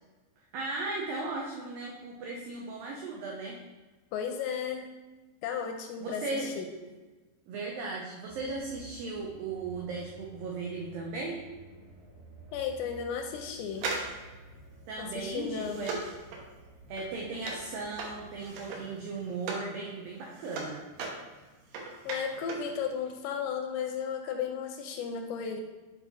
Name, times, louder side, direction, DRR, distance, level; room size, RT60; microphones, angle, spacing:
voice 1, 0.5-3.6 6.0-6.5 7.5-11.4 14.9-16.1 16.9-20.8, right 3 dB, 90° right, -2 dB, 2.0 m, -37 dB
voice 2, 4.1-4.9 5.4-6.7 12.5-13.9 15.0-15.9 22.0-25.6, left 7 dB, 85° left, 4 dB, 2.6 m, -34 dB
sound 1, 8.3-18.6, right 2 dB, 50° right, 2.8 m, -53 dB
sound 2, 13.7-19.7 20.1-22.7 23.0-23.1, right 3 dB, 75° right, 2.4 m, -39 dB
7.4 x 4.6 x 4.1 m, 1.2 s
omnidirectional pair, 5.2 m